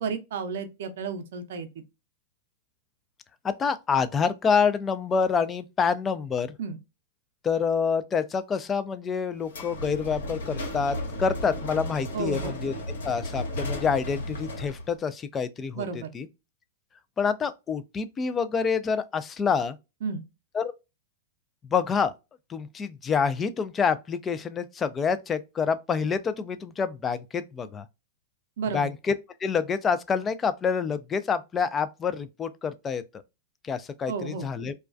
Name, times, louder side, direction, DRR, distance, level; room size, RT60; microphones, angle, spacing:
voice 1, 0.0-1.8 6.6-6.8 12.1-12.5 15.7-16.1 20.0-20.2 28.6-28.9 34.1-34.5, right 5 dB, 70° right, 0.5 m, -32 dB
voice 2, 3.4-6.5 7.4-12.7 13.0-15.8 16.1-16.3 17.2-19.8 20.5-20.7 21.7-22.1 22.5-27.9 28.7-29.1 29.4-33.0 33.6-34.7, left 6 dB, 20° left, 0.3 m, -27 dB
sound 1, 9.5-14.9, left 1 dB, 85° left, 1.1 m, -34 dB
2.2 x 2.2 x 2.4 m
hypercardioid pair, 125°, 0 cm